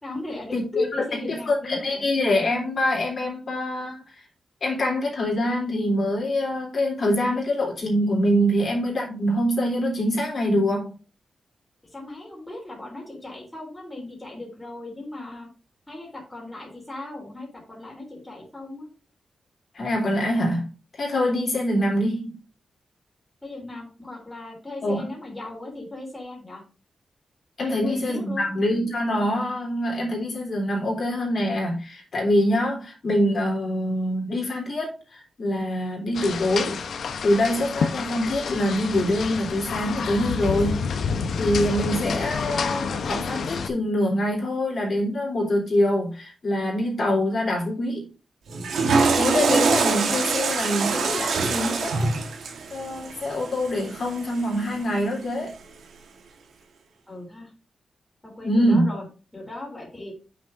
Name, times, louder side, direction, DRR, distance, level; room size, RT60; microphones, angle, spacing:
voice 1, 0.0-2.0 11.9-15.5 15.9-18.9 23.4-26.6 27.6-28.5 57.1-57.5 58.2-59.0 59.3-60.1, left 2 dB, 10° left, 3.4 m, -37 dB
voice 2, 0.5-4.2 4.6-10.9 19.7-20.7 20.9-22.4 24.8-25.1 27.6-36.8 37.2-40.9 41.4-48.1 49.1-52.1 52.7-55.5 58.4-58.8, left 1 dB, 45° left, 3.3 m, -24 dB
sound 1, 36.1-43.7, left 5 dB, 70° left, 0.9 m, -29 dB
Water / Toilet flush, 48.5-54.7, right 4 dB, 85° right, 1.5 m, -24 dB
8.2 x 6.4 x 2.6 m
wide cardioid pair, 165°, 0 cm